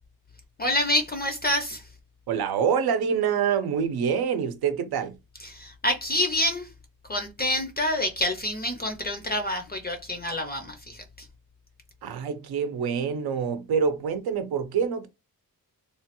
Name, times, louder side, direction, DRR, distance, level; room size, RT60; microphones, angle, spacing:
voice 1, 0.6-1.9 5.4-6.7 7.1-11.3, left 1 dB, 25° left, 0.4 m, -27 dB
voice 2, 2.3-5.2 12.0-15.1, right 7 dB, 80° right, 0.6 m, -26 dB
3.1 x 2.2 x 2.9 m
wide cardioid pair, 150°, 37 cm